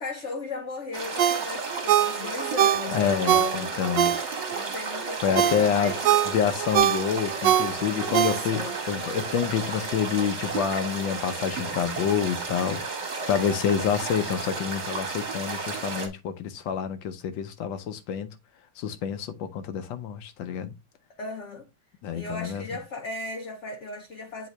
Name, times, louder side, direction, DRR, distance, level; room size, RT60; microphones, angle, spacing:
voice 1, 0.0-3.7 4.5-6.2 7.9-8.8 21.2-21.7 22.1-24.5, left 3 dB, 55° left, 0.8 m, -36 dB
sound 1, 0.9-16.1, right 4 dB, 40° right, 1.6 m, -33 dB
Ringtone, 1.2-4.6 5.0-8.8 9.2-9.3, right 11 dB, 75° right, 1.3 m, -24 dB
voice 2, 2.9-4.1 5.2-5.9 6.3-13.0 13.3-18.3 18.8-20.7 22.0-22.6, left 8 dB, 80° left, 1.5 m, -28 dB
7.9 x 3.8 x 3.3 m
omnidirectional pair, 2.0 m